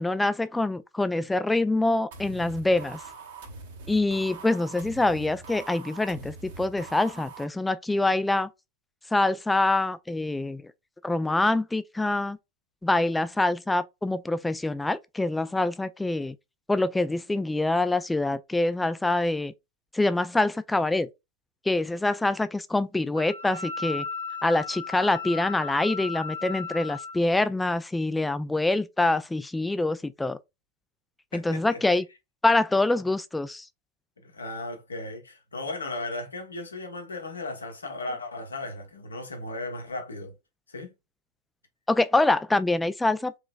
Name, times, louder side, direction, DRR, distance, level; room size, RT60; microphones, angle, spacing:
voice 1, 0.0-3.0 3.9-8.5 9.1-10.7 11.0-12.4 12.8-16.3 16.7-19.5 19.9-21.1 21.7-24.0 24.4-30.4 31.3-32.0 32.4-33.7 41.9-43.4, left 2 dB, 5° left, 0.3 m, -25 dB
sound 1, 2.1-7.4, right 4 dB, 55° right, 1.2 m, -43 dB
Wind instrument woodwind instrument, 23.1-27.2, left 5 dB, 80° right, 0.5 m, -35 dB
voice 2, 31.3-32.0 34.2-40.3 40.7-40.9, left 2 dB, 75° left, 1.1 m, -36 dB
4.7 x 3.0 x 2.3 m
figure-of-eight pair, 90°, 0 cm